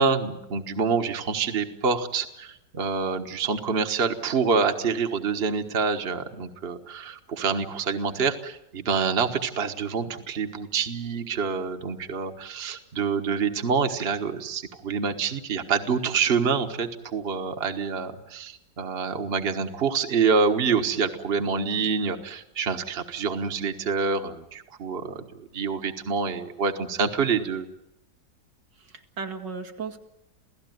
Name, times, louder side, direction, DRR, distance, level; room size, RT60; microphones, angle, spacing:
voice 1, 0.0-25.2 25.5-27.7, right 5 dB, 35° right, 6 dB, 1.6 m, -26 dB
voice 2, 28.8-30.0, right 5 dB, 85° right, 4 dB, 2.9 m, -36 dB
28.5 x 17.0 x 9.4 m, 0.85 s
omnidirectional pair, 1.9 m